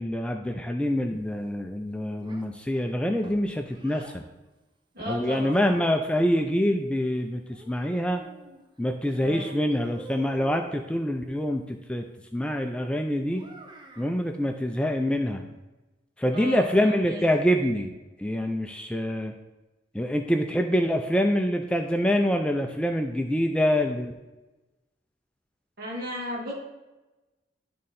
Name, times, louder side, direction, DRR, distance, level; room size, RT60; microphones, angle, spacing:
voice 1, 0.0-4.2 5.1-8.2 8.8-12.0 12.3-13.4 14.0-15.4 16.2-17.9 18.2-19.3 19.9-24.1, equal, 5° left, 4 dB, 0.4 m, -25 dB
Child speech kid speaking, 2.2-4.2 5.1-6.4 7.5-8.7 9.0-10.8 13.3-14.2, right 1 dB, 25° right, 0.7 m, -48 dB
voice 2, 4.9-5.6 9.2-9.5 16.3-17.2 25.8-26.5, equal, 55° right, -3 dB, 2.1 m, -34 dB
10.5 x 3.7 x 4.2 m, 1.1 s
head